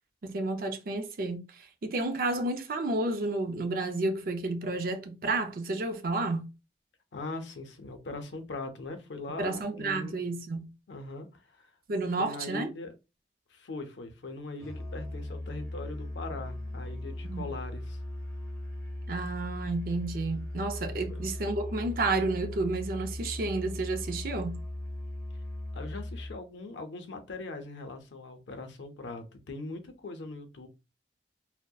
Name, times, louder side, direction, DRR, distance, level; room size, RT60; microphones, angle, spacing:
voice 1, 0.2-6.5 9.4-10.7 11.9-12.7 17.2-17.4 19.1-24.6, right 2 dB, 55° right, 0.4 m, -31 dB
voice 2, 7.1-10.1 10.9-11.7 12.2-12.9 13.5-18.0 21.1-21.2 25.7-30.7, left 2 dB, 85° left, 0.5 m, -41 dB
Musical instrument, 14.6-26.4, left 1 dB, 20° left, 0.7 m, -38 dB
2.6 x 2.0 x 2.2 m
head